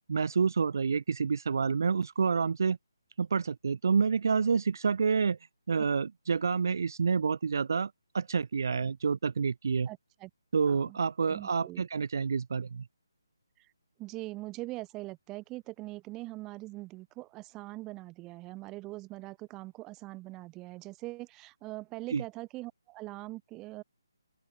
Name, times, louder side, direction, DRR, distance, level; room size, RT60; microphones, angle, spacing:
voice 1, 0.1-2.8 3.2-5.4 5.7-9.9 10.5-12.9 22.1-22.2, right 5 dB, 55° right, 0.5 m, -28 dB
voice 2, 9.9-10.3 10.7-11.0 11.3-11.8 13.6-13.7 14.0-23.8, right 20 dB, 15° right, 1.1 m, -42 dB
open air
figure-of-eight pair, 145°, 2 cm